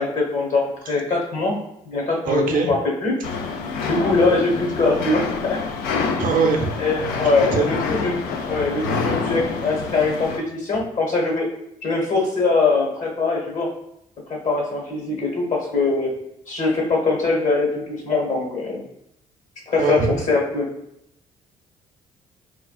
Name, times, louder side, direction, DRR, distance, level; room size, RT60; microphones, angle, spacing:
voice 1, 0.0-1.6 1.8-3.1 3.9-5.6 6.2-6.3 6.8-11.5 11.8-13.7 14.3-16.1 16.5-18.8 19.7-20.7, left 3 dB, 55° left, 0 dB, 1.1 m, -22 dB
voice 2, 2.2-2.7 6.2-6.8 7.3-7.7 8.8-9.0 19.8-20.2, right 5 dB, 60° right, 2 dB, 0.6 m, -22 dB
sound 1, 3.2-10.4, left 5 dB, 75° left, 0.4 m, -27 dB
4.4 x 2.3 x 2.3 m, 0.79 s
hypercardioid pair, 55°, 16 cm